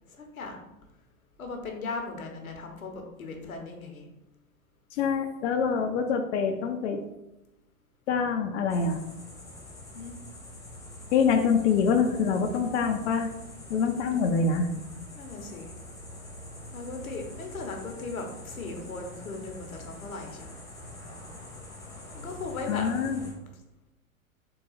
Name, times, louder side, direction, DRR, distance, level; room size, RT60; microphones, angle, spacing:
voice 1, 0.1-0.6 1.4-4.1 9.9-10.1 13.9-14.4 15.1-15.7 16.7-20.5 22.1-22.9, left 3 dB, 85° left, 3 dB, 0.8 m, -38 dB
voice 2, 4.9-7.0 8.1-9.0 11.1-13.3 13.7-14.7 22.7-23.2, left 5 dB, 60° left, 4 dB, 0.5 m, -25 dB
sound 1, 8.7-23.3, left 1 dB, 10° left, 0.9 m, -44 dB
3.8 x 2.3 x 3.9 m, 0.94 s
figure-of-eight pair, 95°, 41 cm